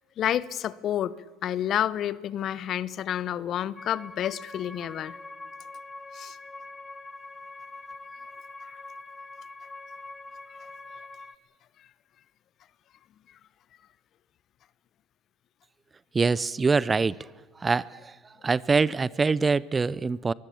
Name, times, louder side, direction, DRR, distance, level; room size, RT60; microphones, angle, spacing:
voice 1, 0.2-1.2 1.4-5.2 6.1-6.4, left 10 dB, 50° left, 19 dB, 0.9 m, -29 dB
sound 1, 3.8-11.4, left 3 dB, 15° left, 1.5 m, -43 dB
voice 2, 16.1-17.2 17.6-18.1 18.4-20.3, right 4 dB, 25° right, 22 dB, 0.6 m, -24 dB
22.5 x 17.0 x 8.6 m, 1.3 s
hypercardioid pair, 80°, 0 cm